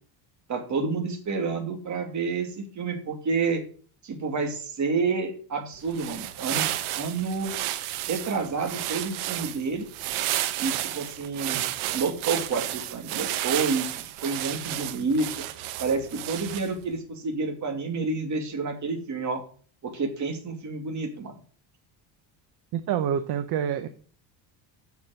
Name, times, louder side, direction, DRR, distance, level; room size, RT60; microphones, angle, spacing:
voice 1, 0.5-3.6 4.0-6.7 7.0-7.5 8.1-9.9 10.6-11.6 11.9-15.3 15.8-19.4 19.8-21.4, right 4 dB, 35° right, 3 dB, 2.7 m, -29 dB
sound 1, 5.8-16.8, right 14 dB, 85° right, 1.1 m, -32 dB
voice 2, 22.7-23.9, right 9 dB, 55° right, 9 dB, 0.9 m, -27 dB
7.2 x 7.1 x 7.7 m, 0.43 s
cardioid pair, 145°, 47 cm